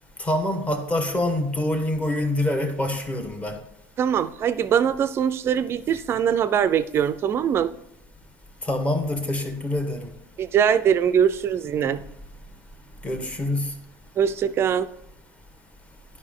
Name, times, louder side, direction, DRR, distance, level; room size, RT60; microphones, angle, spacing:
voice 1, 0.2-3.6 8.6-10.1 11.8-11.9 13.0-13.7, left 1 dB, 15° left, 1.2 m, -25 dB
voice 2, 4.0-7.7 10.4-12.0 14.2-14.9, right 8 dB, 35° right, 0.4 m, -22 dB
11.0 x 5.3 x 3.7 m
supercardioid pair, 135°, 8 cm